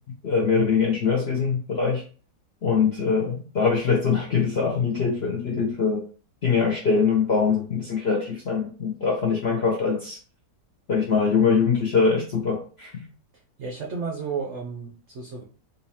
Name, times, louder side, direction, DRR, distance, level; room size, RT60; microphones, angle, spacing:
voice 1, 0.2-2.0 2.6-6.0 6.4-10.2 10.9-12.9, left 5 dB, 65° left, -1 dB, 0.6 m, -23 dB
voice 2, 13.6-15.4, right 5 dB, 65° right, 0 dB, 0.7 m, -32 dB
3.9 x 2.7 x 2.8 m, 0.39 s
omnidirectional pair, 1.8 m